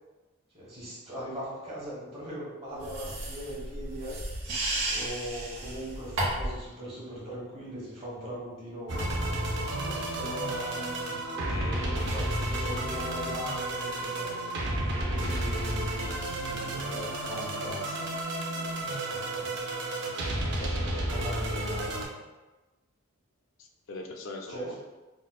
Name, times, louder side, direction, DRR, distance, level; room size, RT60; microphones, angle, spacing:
voice 1, 0.5-4.2 4.8-9.1 9.7-10.8 11.6-14.4 14.7-18.1 18.8-19.6 20.8-22.0 24.5-24.8, equal, 25° right, -7 dB, 1.0 m, -40 dB
sound 1, 2.8-6.6, right 1 dB, 75° right, 0.9 m, -33 dB
sound 2, 8.9-22.0, right 1 dB, 55° right, 0.5 m, -32 dB
voice 2, 11.3-12.1 12.7-13.3 15.2-15.4 18.5-18.8 20.4-22.3 23.6-24.8, left 2 dB, 65° left, 3 dB, 0.4 m, -43 dB
4.8 x 2.1 x 2.3 m, 1.1 s
head